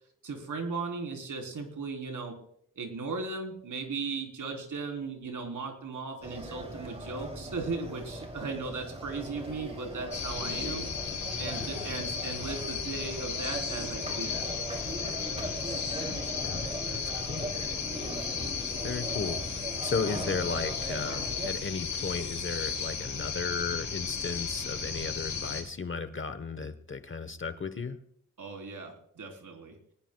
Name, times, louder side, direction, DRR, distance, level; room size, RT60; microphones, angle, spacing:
voice 1, 0.2-2.4 2.8-10.9 11.4-14.5 28.4-29.8, right 4 dB, 70° right, 3 dB, 3.6 m, -37 dB
sound 1, 6.2-21.5, right 1 dB, 20° right, 2.8 m, -40 dB
sound 2, 10.1-25.6, left 5 dB, 65° left, 4.3 m, -35 dB
voice 2, 15.3-17.6 18.8-28.0, left 5 dB, 40° left, 11 dB, 1.0 m, -35 dB
22.5 x 20.0 x 2.3 m, 0.67 s
cardioid pair, 85°, 32 cm